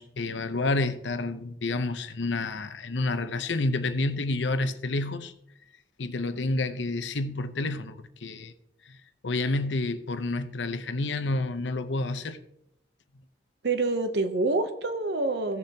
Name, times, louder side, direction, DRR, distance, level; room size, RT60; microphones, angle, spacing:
voice 1, 0.0-5.3 6.0-8.5 8.9-9.0 9.2-12.4, left 2 dB, 85° left, 0.8 m, -29 dB
voice 2, 13.6-15.6, right 3 dB, 65° right, 0.7 m, -27 dB
16.0 x 6.9 x 2.9 m
head